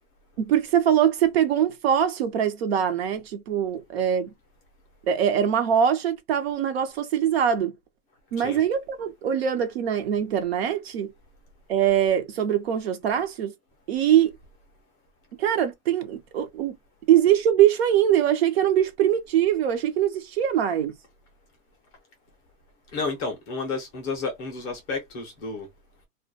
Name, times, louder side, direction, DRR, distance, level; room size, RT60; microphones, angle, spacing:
voice 1, 0.4-4.3 5.1-7.8 8.3-11.1 11.7-13.5 13.9-14.3 15.4-16.8 17.1-20.9, right 10 dB, 50° right, 0.5 m, -22 dB
voice 2, 22.9-25.7, left 4 dB, 20° left, 0.5 m, -31 dB
2.2 x 2.1 x 2.5 m
hypercardioid pair, 150°, 41 cm